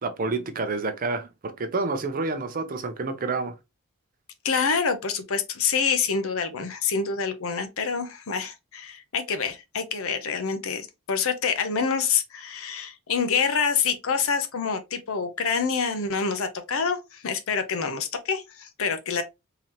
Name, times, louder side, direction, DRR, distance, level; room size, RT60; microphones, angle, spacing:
voice 1, 0.0-3.5, right 3 dB, 40° right, 0.6 m, -29 dB
voice 2, 4.4-19.2, left 5 dB, 65° left, 0.7 m, -27 dB
3.8 x 2.8 x 2.9 m
head